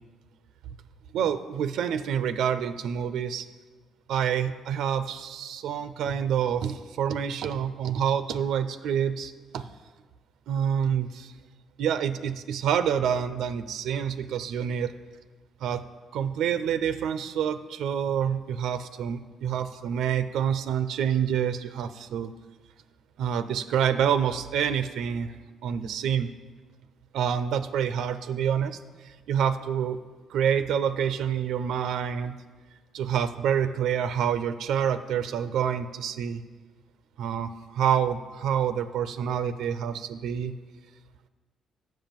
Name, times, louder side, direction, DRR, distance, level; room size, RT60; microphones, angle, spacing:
voice 1, 1.1-3.5 4.1-9.7 10.5-11.3 11.8-14.9 15.6-15.8 16.1-22.3 23.2-25.3 25.6-26.3 27.1-28.8 29.0-30.0 30.3-32.4 32.9-36.4 37.2-40.5, right 8 dB, 80° right, 11 dB, 0.4 m, -27 dB
7.5 x 5.5 x 7.3 m, 1.3 s
cardioid pair, 90°, 0 cm